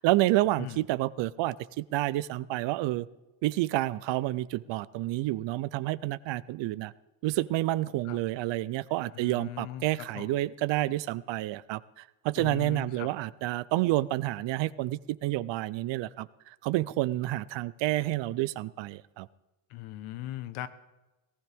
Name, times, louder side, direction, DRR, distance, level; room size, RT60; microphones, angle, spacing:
voice 1, 0.0-3.1 3.4-6.9 7.2-19.3, right 16 dB, 60° right, 18 dB, 0.6 m, -29 dB
voice 2, 9.1-10.4 12.4-13.1 19.7-20.7, left 13 dB, 75° left, 13 dB, 1.2 m, -39 dB
18.5 x 15.0 x 3.6 m, 1.1 s
cardioid pair, 130°, 49 cm